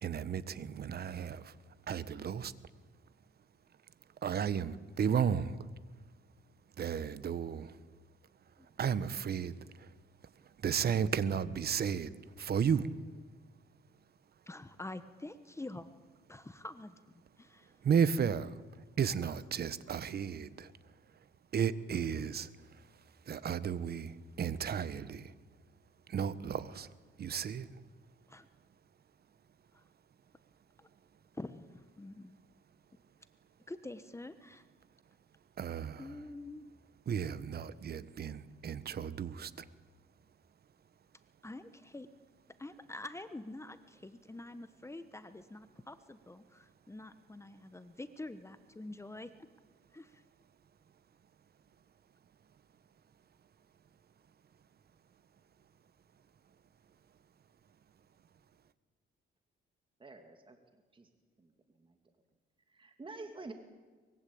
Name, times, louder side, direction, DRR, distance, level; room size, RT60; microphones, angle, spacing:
voice 1, 0.0-1.6 1.9-2.5 4.2-5.7 6.8-7.8 8.8-9.9 10.6-12.9 17.8-18.6 19.0-20.7 21.5-22.9 23.2-25.3 26.1-26.9 27.2-27.8 35.6-36.1 37.1-39.7, right 7 dB, 50° right, 1.3 m, -34 dB
voice 2, 14.5-15.9 16.3-17.0 17.4-17.7 19.2-19.3 19.9-20.0 28.3-28.5 29.7-29.8 30.8-30.9 31.3-32.3 33.7-34.7 36.0-36.7 41.4-42.1 42.6-49.3 49.9-50.2, left 2 dB, 15° left, 1.3 m, -46 dB
voice 3, 60.0-60.6 60.9-61.1 61.4-62.0 62.7-63.5, right 3 dB, 25° right, 2.6 m, -49 dB
24.0 x 22.0 x 8.8 m
cardioid pair, 90°, 20 cm